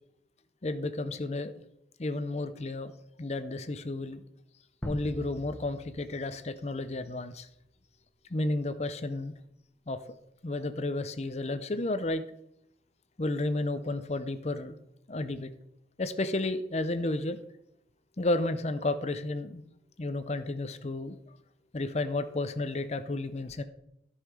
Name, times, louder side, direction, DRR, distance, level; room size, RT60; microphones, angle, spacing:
voice 1, 0.6-1.5 2.0-2.9 3.2-4.2 4.8-7.5 8.3-9.3 9.9-10.0 10.4-12.2 13.2-14.7 15.1-15.5 16.0-17.4 18.2-19.6 20.0-21.2 21.7-23.6, left 2 dB, 35° left, 11 dB, 0.6 m, -32 dB
sound 1, 4.8-7.3, equal, 5° left, 0.9 m, -42 dB
13.5 x 5.6 x 4.8 m, 0.78 s
head